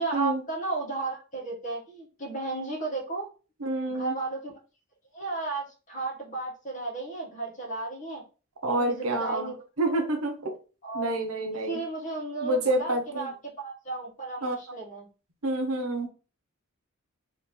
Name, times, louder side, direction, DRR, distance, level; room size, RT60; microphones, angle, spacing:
voice 1, 0.0-3.3 3.9-4.6 5.1-8.2 8.7-9.6 10.8-11.1 11.7-15.1, right 3 dB, 35° left, 1.3 m, -34 dB
voice 2, 3.6-4.2 8.6-9.5 9.8-10.6 10.9-11.8 12.4-13.3 14.4-14.6 15.4-16.1, right 1 dB, 85° right, 0.9 m, -28 dB
3.1 x 3.0 x 4.1 m
head